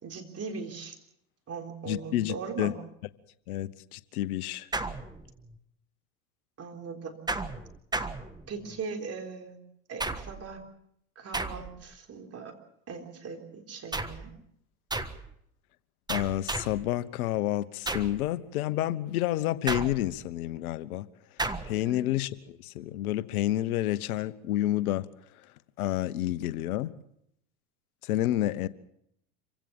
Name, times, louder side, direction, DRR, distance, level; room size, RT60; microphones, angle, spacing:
voice 1, 0.0-1.0 1.5-2.7 6.6-7.2 8.5-9.6 9.9-10.6 11.2-12.5 12.9-14.3 21.9-22.0, right 5 dB, 35° right, 3.8 m, -39 dB
voice 2, 1.9-2.7 3.5-4.7 16.1-21.1 21.6-25.1 25.8-26.9 28.0-28.7, left 14 dB, 80° left, 1.1 m, -29 dB
sound 1, 4.7-5.6 7.3-8.8 10.0-10.6 11.3-12.0 13.9-14.3 14.9-15.3 16.1-16.9 17.9-18.3 19.7-20.3 21.4-21.8, right 3 dB, 10° right, 1.3 m, -34 dB
26.0 x 16.5 x 7.1 m
hypercardioid pair, 95°, 43 cm